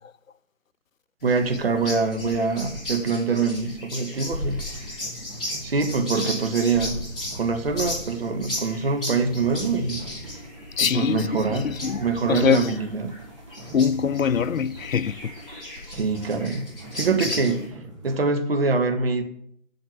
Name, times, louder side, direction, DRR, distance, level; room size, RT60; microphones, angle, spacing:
sound 1, 1.2-17.7, left 1 dB, 5° left, 0.9 m, -35 dB
voice 1, 1.2-4.6 5.6-7.0 7.3-10.0 10.8-11.7 12.0-13.2 15.9-16.7 17.0-17.7 18.0-19.2, right 4 dB, 50° right, 1.3 m, -24 dB
sound 2, 4.1-18.2, right 2 dB, 25° right, 1.7 m, -43 dB
voice 2, 10.8-12.0 12.3-12.7 13.7-15.3, left 7 dB, 90° left, 0.5 m, -23 dB
8.0 x 6.5 x 7.6 m
figure-of-eight pair, 160°, 39 cm